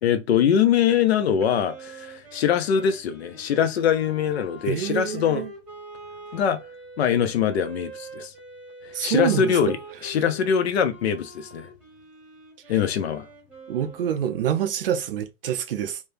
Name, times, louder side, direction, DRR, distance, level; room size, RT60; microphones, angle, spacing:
voice 1, 0.0-5.4 6.3-6.6 7.0-8.3 8.8-11.7 12.7-13.3, left 8 dB, 55° left, 0.7 m, -23 dB
Wind instrument woodwind instrument, 1.4-14.8, right 2 dB, 5° right, 1.1 m, -44 dB
voice 2, 4.7-5.5 8.9-9.6 13.7-16.0, right 9 dB, 45° right, 0.5 m, -26 dB
4.2 x 2.2 x 3.4 m
hypercardioid pair, 160°, 40 cm